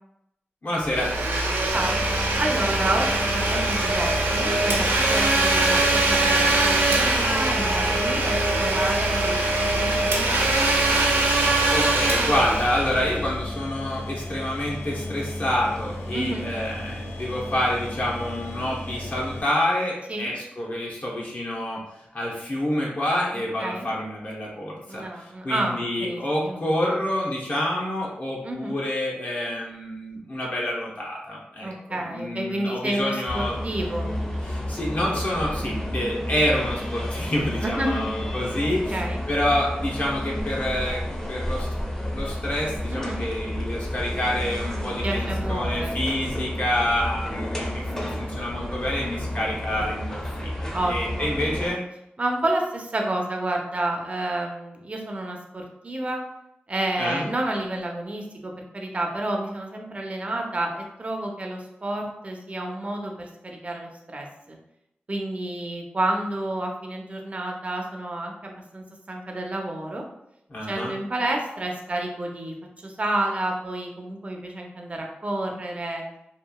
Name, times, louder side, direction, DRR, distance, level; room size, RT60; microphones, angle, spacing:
voice 1, 0.6-1.1 11.7-21.8 22.1-33.6 34.4-41.0 41.3-41.7 42.1-51.8 57.0-57.3 70.5-70.9, left 1 dB, 50° left, -4 dB, 0.8 m, -28 dB
Domestic sounds home sounds, 0.8-13.4, right 2 dB, 90° right, 0.4 m, -22 dB
sound 1, 1.7-19.4, left 1 dB, 75° left, 0.5 m, -35 dB
voice 2, 2.3-10.7 16.1-16.5 20.1-20.3 23.6-23.9 24.9-26.6 28.4-28.8 31.6-34.1 37.6-38.0 38.9-39.2 42.9-43.2 44.8-46.3 49.3-49.9 50.7-51.6 52.2-56.2 56.7-64.6 65.1-70.0 70.7-72.5 72.8-76.0, right 1 dB, 35° right, 1 dB, 0.5 m, -30 dB
sound 2, 33.3-51.7, left 1 dB, 15° left, 0.6 m, -31 dB
2.9 x 2.4 x 2.2 m, 0.82 s
wide cardioid pair, 70°, 4 cm